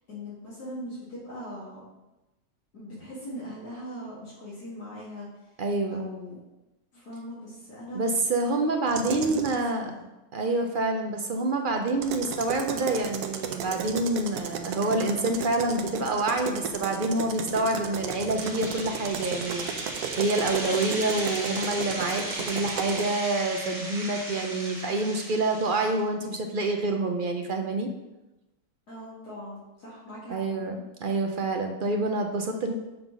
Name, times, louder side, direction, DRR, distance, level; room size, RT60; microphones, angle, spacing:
voice 1, 0.1-1.8 2.7-5.3 5.9-6.4 6.9-8.0 8.9-10.0 28.9-30.4, equal, 80° left, -9 dB, 2.6 m, -40 dB
voice 2, 5.6-6.0 7.9-9.9 10.3-27.9 30.3-30.8 31.0-32.7, right 2 dB, 55° right, 4 dB, 0.5 m, -27 dB
sound 1, 8.9-9.6 11.9-23.1, right 7 dB, 90° right, 1.2 m, -35 dB
sound 2, 18.1-26.0, right 1 dB, 35° right, 1.1 m, -36 dB
6.4 x 3.8 x 6.0 m, 1.0 s
omnidirectional pair, 1.6 m